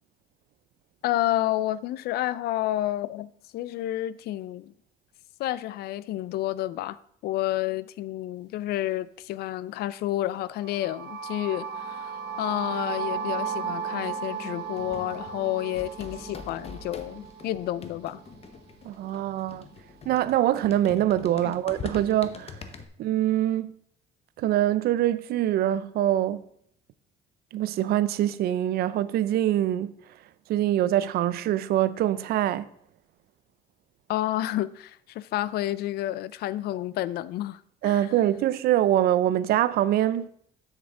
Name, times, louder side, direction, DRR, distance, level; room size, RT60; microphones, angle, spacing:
voice 1, 1.0-4.7 5.4-18.2 21.4-21.5 34.1-38.1, left 14 dB, 70° left, 0.4 m, -30 dB
sound 1, 10.6-18.5, right 6 dB, 85° right, 1.1 m, -35 dB
sound 2, 14.7-22.9, left 5 dB, 35° left, 0.8 m, -43 dB
voice 2, 18.8-19.7 20.1-22.6 23.0-23.7 24.4-26.4 27.5-29.9 30.5-32.7 37.8-40.3, right 12 dB, 65° right, 0.5 m, -24 dB
7.2 x 6.8 x 3.7 m
cardioid pair, 110°, 17 cm